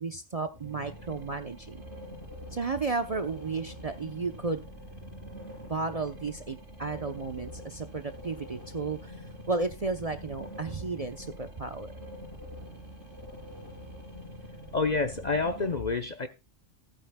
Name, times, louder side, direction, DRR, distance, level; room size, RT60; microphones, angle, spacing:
voice 1, 0.0-1.8 2.5-4.6 5.7-9.1 9.5-11.9, right 3 dB, 35° right, 0.7 m, -33 dB
sound 1, 0.5-15.7, equal, 55° right, 5.0 m, -45 dB
voice 2, 14.7-16.3, left 4 dB, 40° left, 0.8 m, -28 dB
15.0 x 9.1 x 2.2 m
omnidirectional pair, 1.3 m